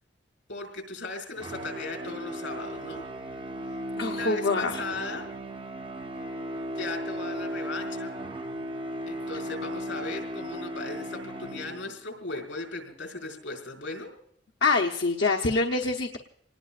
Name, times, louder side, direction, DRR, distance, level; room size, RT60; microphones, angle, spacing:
voice 1, 0.5-3.1 4.1-5.2 6.7-8.2 9.1-14.1, left 3 dB, 90° left, 1 dB, 5.1 m, -37 dB
sound 1, 1.3-12.1, equal, 30° right, 0.7 m, -36 dB
voice 2, 4.0-4.8 14.6-16.2, left 3 dB, 65° left, 2 dB, 0.8 m, -25 dB
27.5 x 19.5 x 2.4 m, 0.71 s
head